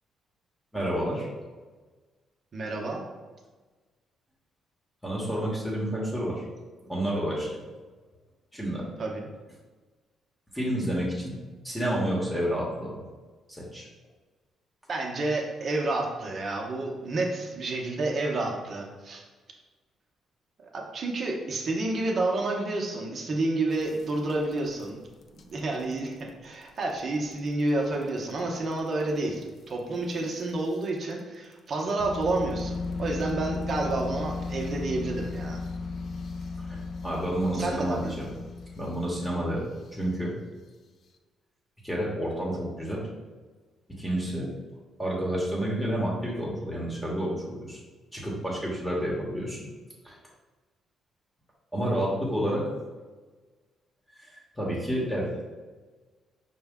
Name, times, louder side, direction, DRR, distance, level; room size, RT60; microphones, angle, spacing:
voice 1, 0.7-1.3 5.0-6.4 6.9-7.5 8.5-8.8 10.5-11.4 11.6-13.0 13.6-13.8 36.6-38.3 38.8-40.3 41.8-43.1 44.0-44.5 45.0-47.8 48.1-49.7 50.0-50.2 51.7-52.6 54.2-55.3, right 1 dB, 5° left, -5 dB, 1.0 m, -29 dB
voice 2, 2.5-3.0 9.0-9.3 14.9-19.2 20.6-25.0 25.4-35.6 37.5-38.1, right 2 dB, 50° right, 0 dB, 0.8 m, -30 dB
sound 1, 23.7-24.8 25.2-25.4 25.8-26.0 26.3-26.4 26.6-26.7 27.3-27.4 28.2-28.3 28.7-28.8 30.1-30.2 30.8-30.9 32.0-40.3, left 3 dB, 55° left, 0.3 m, -36 dB
4.9 x 2.2 x 3.6 m, 1.3 s
cardioid pair, 90°, 0 cm